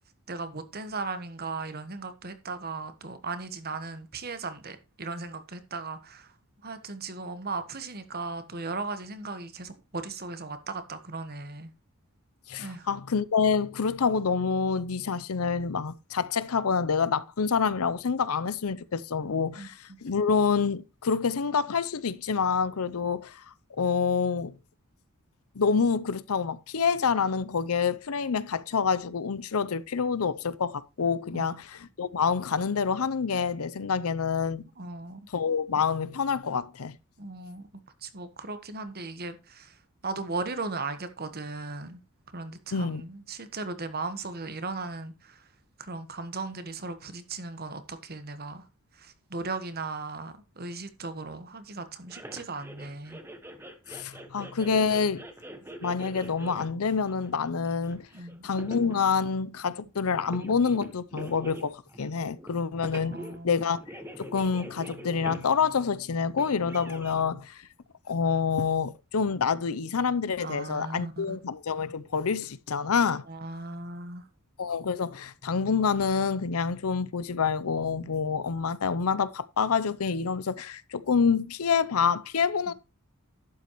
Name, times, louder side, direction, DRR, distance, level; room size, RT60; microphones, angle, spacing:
voice 1, 0.3-6.3 6.6-11.7 12.6-12.9 19.6-19.7 31.3-31.5 34.8-35.2 37.2-37.7 38.0-42.0 42.3-45.5 45.8-48.7 48.9-53.2 58.1-58.4 63.0-63.6 70.4-71.4 73.3-74.3, right 3 dB, 45° right, 1.4 m, -37 dB
voice 2, 12.5-23.4 23.8-24.6 25.6-34.6 35.3-37.0 42.7-43.0 53.9-55.3 55.8-58.1 58.4-63.2 63.4-63.8 64.2-67.6 68.1-73.2 74.6-82.7, left 5 dB, 85° left, 0.6 m, -27 dB
sound 1, 52.1-59.0 60.1-62.5 62.8-63.4 63.7-65.8 66.4-67.3, right 1 dB, 10° right, 1.3 m, -44 dB
11.5 x 8.5 x 3.1 m
head